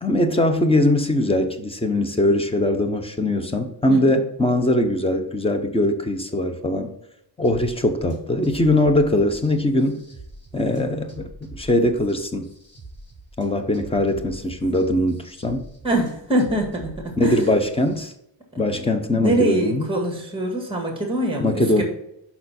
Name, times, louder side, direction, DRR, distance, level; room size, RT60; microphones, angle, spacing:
voice 1, 0.0-6.9 7.4-10.0 10.5-12.5 13.4-15.6 17.2-18.1 18.6-19.8 21.4-21.8, left 1 dB, 15° left, 7 dB, 0.7 m, -21 dB
sound 1, 7.4-18.1, right 2 dB, 30° left, 2.6 m, -44 dB
voice 2, 15.8-17.4 18.5-18.7 19.2-21.8, right 1 dB, 10° right, 1 dB, 1.9 m, -24 dB
6.6 x 5.6 x 4.3 m, 0.77 s
wide cardioid pair, 170°, 45 cm